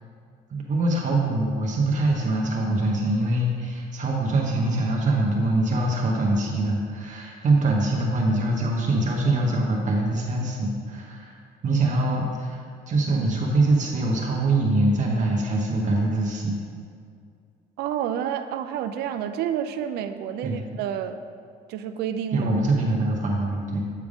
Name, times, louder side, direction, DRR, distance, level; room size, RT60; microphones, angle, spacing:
voice 1, 0.5-11.3 11.6-12.6 12.9-16.6 20.4-20.6 22.3-23.8, right 2 dB, 45° right, -2 dB, 1.0 m, -23 dB
voice 2, 17.8-21.2 21.7-22.5, right 9 dB, 75° right, 9 dB, 0.4 m, -29 dB
8.4 x 3.5 x 4.9 m, 2.2 s
cardioid pair, 110°, 17 cm